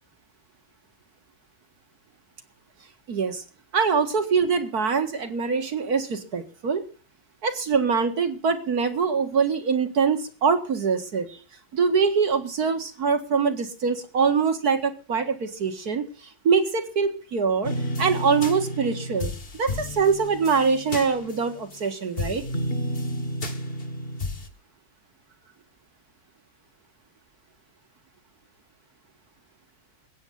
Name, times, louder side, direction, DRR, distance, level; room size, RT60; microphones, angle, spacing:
voice 1, 3.1-3.4 3.7-6.8 7.4-11.4 11.7-16.0 16.4-17.7 18.0-22.4, right 5 dB, 50° right, 7 dB, 2.3 m, -24 dB
sound 1, 17.6-21.8 22.2-24.5, equal, 30° left, 1.6 m, -31 dB
22.0 x 9.1 x 4.0 m, 0.38 s
omnidirectional pair, 2.1 m